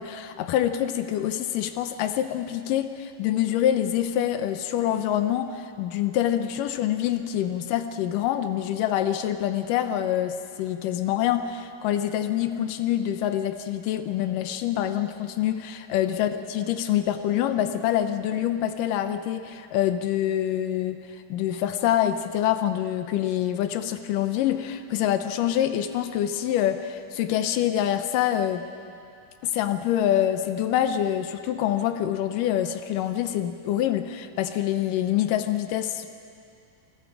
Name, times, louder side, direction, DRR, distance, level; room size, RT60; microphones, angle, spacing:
voice 1, 0.0-21.0 21.3-28.7 29.4-36.1, left 11 dB, 80° left, 9 dB, 2.4 m, -26 dB
28.5 x 21.0 x 4.9 m, 2.5 s
omnidirectional pair, 4.0 m